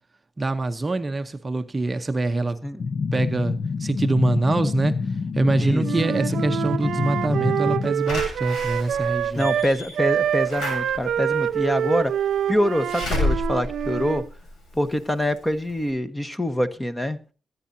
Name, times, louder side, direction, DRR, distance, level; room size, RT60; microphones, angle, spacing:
voice 1, 0.4-2.7 3.1-4.9 5.3-9.6, right 2 dB, 20° right, 0.8 m, -24 dB
sound 1, 2.8-7.9, left 5 dB, 50° left, 0.7 m, -27 dB
Wind instrument woodwind instrument, 5.8-9.7 9.9-14.3, right 9 dB, 80° right, 0.6 m, -26 dB
Slam / Alarm, 8.1-14.9 15.4-15.5 15.7-15.8, left 2 dB, 75° left, 7.1 m, -31 dB
voice 2, 9.3-12.1 12.5-14.2 14.7-17.2, equal, 10° left, 1.1 m, -25 dB
24.0 x 9.5 x 2.7 m
cardioid pair, 130°, 0 cm